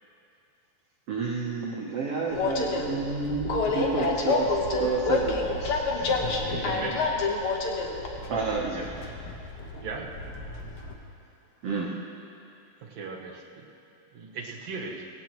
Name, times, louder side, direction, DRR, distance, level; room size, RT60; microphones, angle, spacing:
voice 1, 1.1-6.4 8.3-9.1 11.6-11.9, right 4 dB, 80° right, -2 dB, 1.3 m, -31 dB
Train, 2.3-10.9, left 3 dB, 70° left, 1.3 m, -29 dB
voice 2, 6.5-7.1 9.8-10.1 12.9-13.6 14.1-15.0, right 4 dB, 60° right, -1 dB, 2.1 m, -37 dB
19.0 x 17.5 x 3.1 m, 2.7 s
omnidirectional pair, 4.2 m